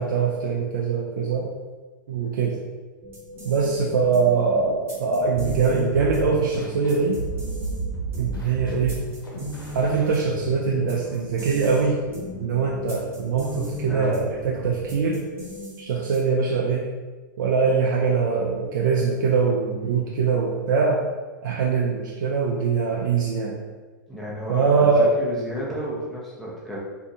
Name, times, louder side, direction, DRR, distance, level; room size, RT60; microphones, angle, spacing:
voice 1, 0.0-1.5 2.1-2.6 3.4-7.2 8.2-9.0 9.7-12.0 12.4-15.2 15.8-16.9 17.4-21.0 21.4-23.6 24.5-25.1, right 5 dB, 70° right, -3 dB, 0.4 m, -22 dB
sound 1, 3.0-16.5, equal, 20° right, 0.9 m, -38 dB
sound 2, 5.3-15.0, right 3 dB, 90° left, 0.7 m, -35 dB
voice 2, 24.1-26.8, left 1 dB, ahead, -7 dB, 0.7 m, -32 dB
2.6 x 2.3 x 2.6 m, 1.3 s
hypercardioid pair, 115°, 11 cm